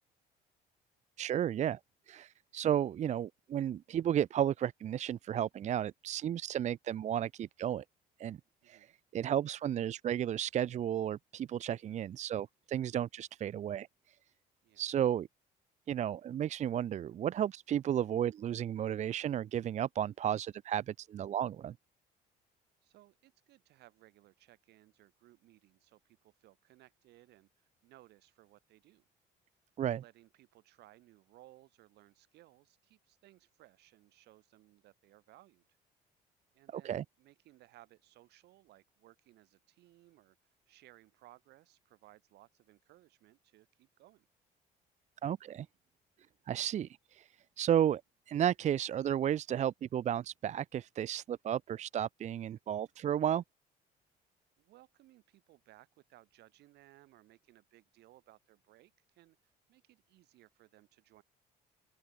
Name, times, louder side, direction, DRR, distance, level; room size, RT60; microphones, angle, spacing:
voice 1, 1.2-1.8 2.1-7.8 8.2-8.4 8.7-8.9 9.1-13.9 14.8-15.3 15.9-21.7 29.8-30.0 36.7-37.0 45.2-45.7 46.5-47.3 47.6-48.0 48.3-53.4, right 10 dB, 45° right, 0.5 m, -33 dB
voice 2, 8.6-9.0 14.6-14.8 22.8-29.1 29.9-35.6 36.5-40.4 40.7-44.3 54.6-61.2, right 16 dB, 80° right, 6.2 m, -62 dB
open air
cardioid pair, 110°, 17 cm